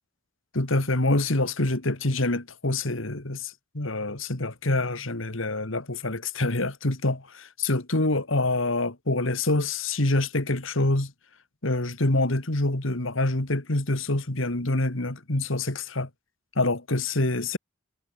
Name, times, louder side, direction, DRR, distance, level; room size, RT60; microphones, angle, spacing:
voice 1, 0.5-11.1 11.6-16.1 16.6-17.6, left 2 dB, 70° left, 2.4 m, -26 dB
head